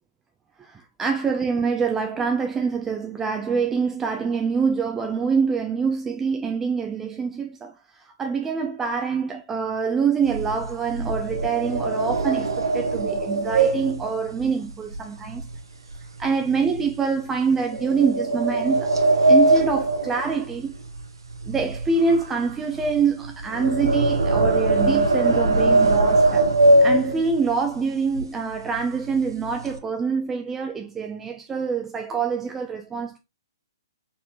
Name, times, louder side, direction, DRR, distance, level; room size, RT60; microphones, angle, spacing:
voice 1, 0.6-15.5 16.2-18.9 19.3-20.7 21.5-26.5 26.8-33.2, right 5 dB, 15° right, 0.4 m, -25 dB
sound 1, 10.2-15.6 15.9-16.2 16.7-16.9 17.7-21.0 21.3-27.5 28.1-28.2 28.5-28.8 29.1-29.8, right 2 dB, 85° right, 1.0 m, -21 dB
4.3 x 4.1 x 2.9 m
hypercardioid pair, 125°, 2 cm